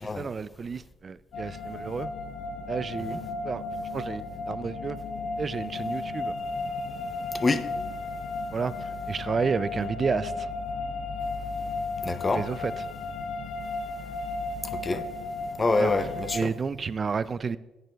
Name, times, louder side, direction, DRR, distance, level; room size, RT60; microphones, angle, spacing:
voice 1, 0.2-2.1 2.7-3.6 3.9-5.0 5.4-6.3 8.5-10.5 12.3-12.7 14.9-15.0 15.8-15.9 16.3-17.6, right 5 dB, 40° right, 0.3 m, -31 dB
sound 1, 1.3-16.4, left 3 dB, 65° left, 0.8 m, -34 dB
voice 2, 7.3-7.7 12.0-12.4 14.8-15.0 15.6-16.5, left 3 dB, 30° left, 0.6 m, -26 dB
10.0 x 9.3 x 2.3 m
supercardioid pair, 75°, 0 cm